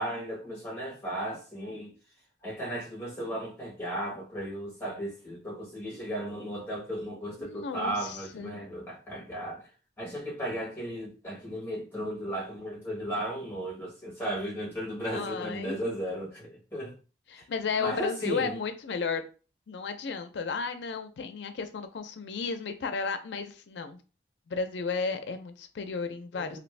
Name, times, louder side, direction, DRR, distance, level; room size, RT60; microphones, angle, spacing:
voice 1, 0.0-1.9 2.4-9.7 10.0-16.9 17.3-17.5 17.8-18.6 26.3-26.6, right 1 dB, 10° left, 1.1 m, -35 dB
voice 2, 7.4-8.6 15.1-15.8 17.3-19.2 19.7-24.0 24.5-26.6, left 5 dB, 75° left, 0.4 m, -33 dB
2.7 x 2.5 x 3.2 m
head